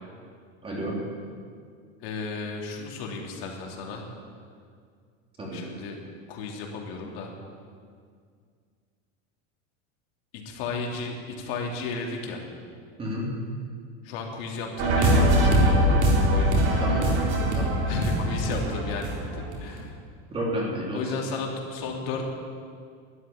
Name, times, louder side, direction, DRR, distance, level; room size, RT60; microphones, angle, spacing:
voice 1, 0.6-1.0 5.4-5.6 13.0-13.3 16.8-17.1 17.5-17.8 20.3-21.1, equal, 15° right, -3 dB, 3.2 m, -31 dB
voice 2, 2.0-4.1 5.5-6.0 6.3-7.3 10.3-12.4 14.0-16.0 16.3-16.7 17.9-20.0 20.9-22.2, left 3 dB, 55° left, 0 dB, 3.0 m, -33 dB
sound 1, 14.8-19.8, right 1 dB, 45° right, 4.3 m, -22 dB
13.0 x 11.0 x 9.8 m, 2.1 s
supercardioid pair, 165°, 34 cm